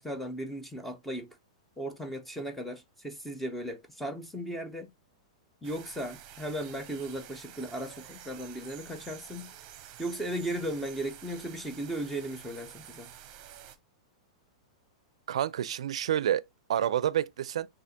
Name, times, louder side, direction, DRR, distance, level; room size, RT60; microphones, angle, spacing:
voice 1, 0.0-1.4 1.8-4.9 5.6-9.5 10.0-13.1, right 1 dB, 5° left, 0.7 m, -36 dB
sound 1, 5.6-13.8, right 10 dB, 35° right, 0.8 m, -49 dB
voice 2, 15.3-16.4 16.7-17.7, right 10 dB, 80° right, 0.4 m, -28 dB
6.5 x 2.5 x 2.8 m
hypercardioid pair, 145°, 3 cm